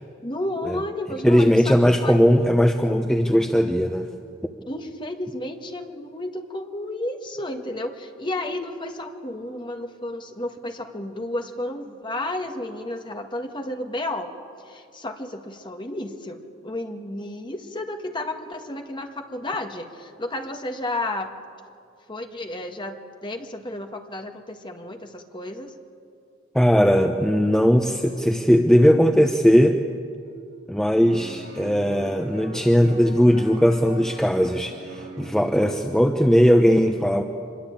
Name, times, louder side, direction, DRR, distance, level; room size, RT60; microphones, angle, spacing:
voice 1, 0.2-2.2 4.7-14.3 14.6-21.3 22.1-25.8, left 1 dB, 25° left, 4 dB, 1.7 m, -32 dB
voice 2, 1.2-4.1 26.5-29.8 30.7-37.2, equal, 5° left, 4 dB, 0.9 m, -18 dB
sound 1, 30.2-30.3 31.0-35.3, right 2 dB, 65° right, 7.5 m, -40 dB
25.0 x 22.0 x 8.9 m, 2.3 s
head